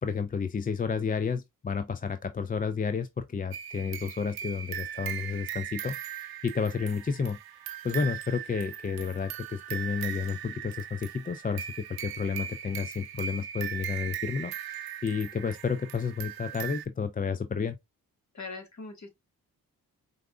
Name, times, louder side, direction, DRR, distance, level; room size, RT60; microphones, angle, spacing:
voice 1, 0.0-7.4 7.8-11.7 12.0-14.7 15.0-17.8, left 5 dB, 25° left, 0.4 m, -31 dB
sound 1, 3.5-16.9, right 10 dB, 70° right, 0.6 m, -39 dB
voice 2, 18.3-19.1, left 3 dB, 45° left, 1.7 m, -41 dB
4.6 x 2.5 x 2.2 m
supercardioid pair, 45°, 38 cm